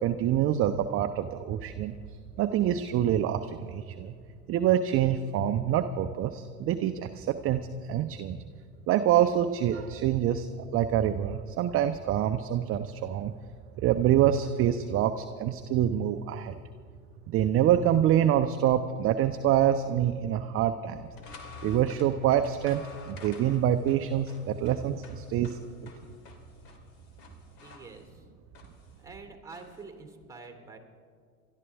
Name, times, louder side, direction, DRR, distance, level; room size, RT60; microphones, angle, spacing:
voice 1, 0.0-2.0 2.4-4.1 4.5-8.4 8.9-13.3 13.8-16.6 17.3-21.1 21.6-25.6, right 10 dB, 30° right, 9 dB, 0.6 m, -26 dB
sound 1, 20.9-29.8, left 3 dB, 50° left, 2.6 m, -50 dB
voice 2, 27.6-28.3 29.0-30.8, right 4 dB, 5° right, 4 dB, 2.5 m, -47 dB
28.5 x 12.5 x 3.5 m, 2.2 s
hypercardioid pair, 85°, 45 cm